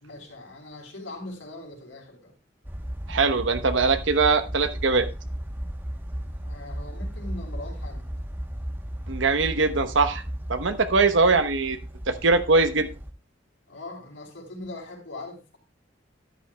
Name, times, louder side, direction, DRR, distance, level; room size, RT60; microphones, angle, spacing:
voice 1, 0.0-2.3 6.4-8.1 13.7-15.6, left 2 dB, 90° left, 4.0 m, -41 dB
sound 1, 2.6-13.1, equal, 10° right, 1.0 m, -35 dB
voice 2, 3.1-5.1 9.1-10.2 10.5-11.8 12.1-12.9, right 4 dB, 80° right, 1.1 m, -21 dB
13.0 x 10.5 x 2.3 m
head